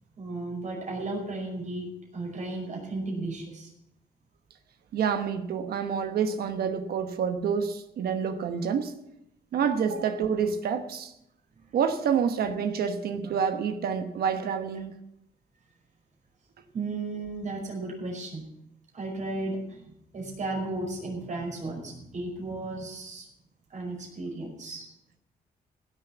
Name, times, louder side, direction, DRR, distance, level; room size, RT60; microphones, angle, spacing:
voice 1, 0.2-3.7 11.6-11.7 16.7-18.5 18.9-19.8 20.1-23.3 23.7-24.9, right 2 dB, 50° right, 5.2 m, -34 dB
voice 2, 4.9-8.9 9.5-11.1 11.7-14.9, right 7 dB, 80° right, 1.2 m, -28 dB
16.0 x 7.1 x 7.2 m
cardioid pair, 115°, 16 cm